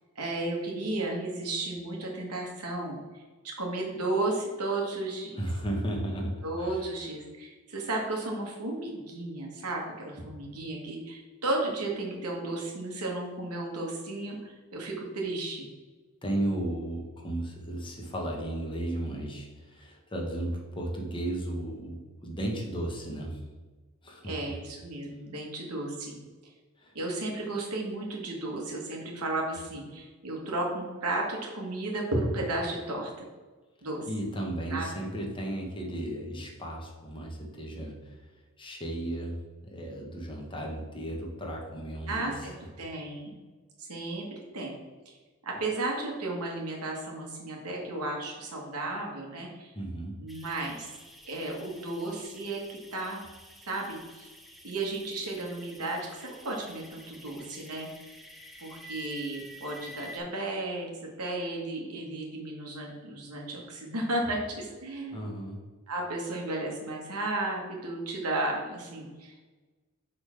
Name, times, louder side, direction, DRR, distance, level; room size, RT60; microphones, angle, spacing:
voice 1, 0.2-5.4 6.4-15.7 24.3-26.2 27.0-33.1 33.8-34.1 34.7-34.9 42.1-43.4 43.8-44.3 44.5-44.7 45.1-45.2 45.4-49.7 50.2-50.9 51.3-53.2 53.7-54.3 54.6-57.9 58.6-60.9 61.2-65.2 65.9-69.4, right 2 dB, 90° right, 0 dB, 1.8 m, -34 dB
voice 2, 5.3-6.9 16.2-23.4 24.0-24.6 26.8-26.9 34.1-38.3 38.6-39.3 39.6-42.5 49.7-50.1 65.1-65.6, right 1 dB, 25° left, 0 dB, 1.4 m, -34 dB
sound 1, 50.3-60.2, left 1 dB, ahead, 0.7 m, -50 dB
6.7 x 3.9 x 5.8 m, 1.3 s
head